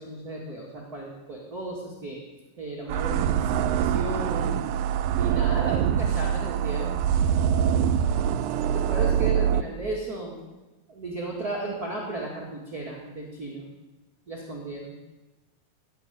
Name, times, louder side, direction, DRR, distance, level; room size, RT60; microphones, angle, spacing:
voice 1, 0.0-2.2 2.6-4.6 5.2-7.0 8.7-10.4 10.9-13.7 14.3-15.0, right 2 dB, 30° right, -4 dB, 2.3 m, -34 dB
sound 1, 2.9-9.6, right 9 dB, 85° right, 2.3 m, -24 dB
17.0 x 7.9 x 9.2 m, 1.1 s
omnidirectional pair, 3.9 m